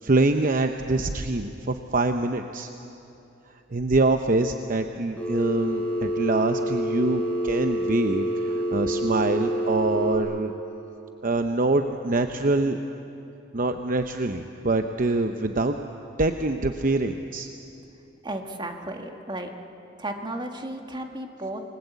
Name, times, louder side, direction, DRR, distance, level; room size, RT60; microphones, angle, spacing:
voice 1, 0.0-2.7 3.7-10.5 11.2-12.8 13.5-15.8 16.2-17.5, right 2 dB, 45° right, 7 dB, 0.8 m, -25 dB
Telephone, 5.2-10.2, equal, 5° left, 3.8 m, -27 dB
voice 2, 18.2-19.5 20.0-21.6, right 1 dB, 25° right, 4 dB, 1.8 m, -34 dB
28.0 x 20.5 x 8.3 m, 2.9 s
head